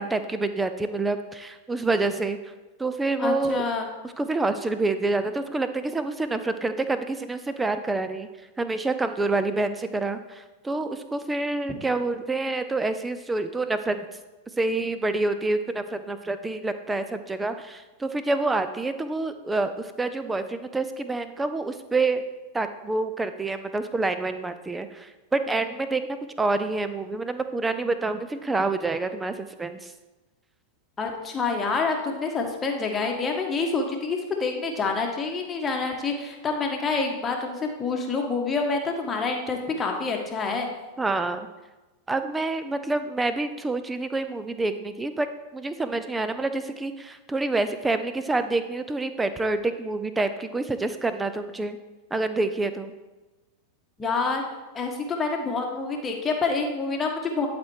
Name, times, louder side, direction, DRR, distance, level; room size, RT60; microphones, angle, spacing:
voice 1, 0.0-2.4 2.8-3.7 4.2-8.3 8.6-14.0 14.6-22.2 22.5-29.9 41.0-41.5 42.1-45.3 45.5-51.8 52.1-52.9, right 3 dB, 10° right, 10 dB, 0.6 m, -27 dB
voice 2, 3.2-3.9 31.0-40.7 54.0-54.4 54.7-57.5, left 4 dB, 20° left, 1 dB, 1.4 m, -27 dB
11.5 x 4.3 x 4.7 m, 1.1 s
figure-of-eight pair, 90°, 0 cm